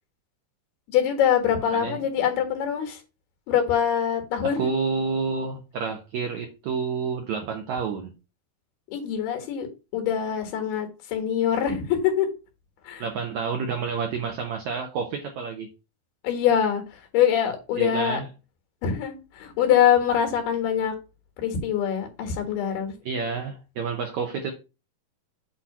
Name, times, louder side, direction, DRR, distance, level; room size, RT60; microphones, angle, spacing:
voice 1, 0.9-3.0 3.5-4.7 8.9-9.7 9.9-12.3 12.9-13.0 16.2-18.2 18.8-21.0 21.4-23.0, left 9 dB, 80° left, 3.6 m, -24 dB
voice 2, 4.4-8.1 13.0-15.7 17.8-18.3 23.0-24.5, right 5 dB, 85° right, 1.6 m, -29 dB
8.0 x 2.8 x 5.9 m
omnidirectional pair, 4.4 m